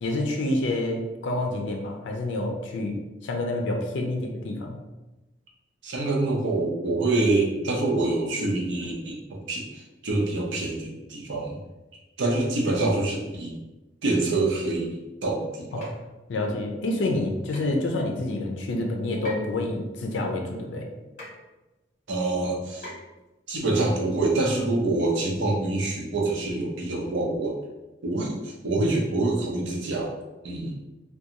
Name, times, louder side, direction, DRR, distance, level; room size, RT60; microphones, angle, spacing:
voice 1, 0.0-2.9 3.2-4.8 15.7-15.9 16.3-20.9, left 2 dB, 80° left, 2 dB, 0.4 m, -28 dB
voice 2, 5.8-11.6 12.2-13.5 14.0-14.9 15.2-15.9 22.1-22.9 23.5-27.5 28.0-30.1 30.4-30.7, right 2 dB, 85° right, -1 dB, 0.6 m, -26 dB
sound 1, 15.8-16.0 17.5-17.7 19.2-19.6 21.2-21.4 22.8-23.2, left 1 dB, 40° left, 1.2 m, -40 dB
2.5 x 2.3 x 2.8 m, 1.1 s
head